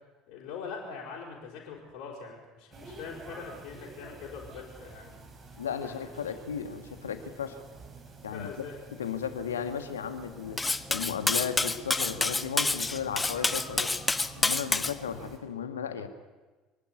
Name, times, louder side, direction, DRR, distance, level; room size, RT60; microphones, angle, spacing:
voice 1, 0.3-5.2 5.8-6.1 8.3-8.8, left 5 dB, 60° left, -5 dB, 4.9 m, -42 dB
sound 1, 2.7-15.4, right 4 dB, 30° right, 4.2 m, -49 dB
voice 2, 5.6-7.6 8.2-8.5 9.0-10.6 10.9-13.9 14.4-16.1, left 7 dB, 75° left, 9 dB, 1.6 m, -35 dB
Cutlery silverware, 10.6-14.9, left 3 dB, 15° left, 0.9 m, -28 dB
25.0 x 11.5 x 9.6 m, 1.2 s
figure-of-eight pair, 60°, 0 cm